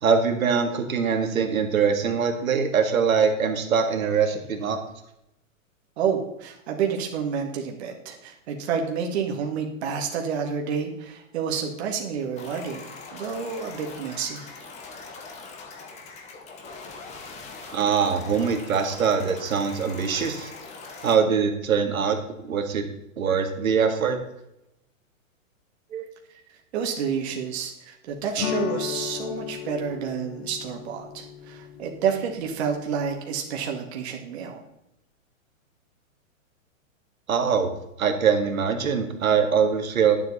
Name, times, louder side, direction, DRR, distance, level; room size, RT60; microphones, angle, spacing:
voice 1, 0.0-4.8 17.7-20.5 21.0-22.2 22.5-22.9 23.2-24.2 25.9-26.1 37.3-37.7 38.0-40.1, right 6 dB, 85° right, 5 dB, 2.0 m, -23 dB
voice 2, 6.0-12.8 13.1-14.6 26.7-34.6, right 6 dB, 50° right, 2 dB, 1.9 m, -29 dB
sound 1, 12.4-21.2, left 4 dB, 15° left, 1.0 m, -42 dB
sound 2, 28.4-33.2, left 9 dB, 60° left, 1.1 m, -35 dB
11.0 x 7.4 x 4.1 m, 0.83 s
hypercardioid pair, 150°, 40 cm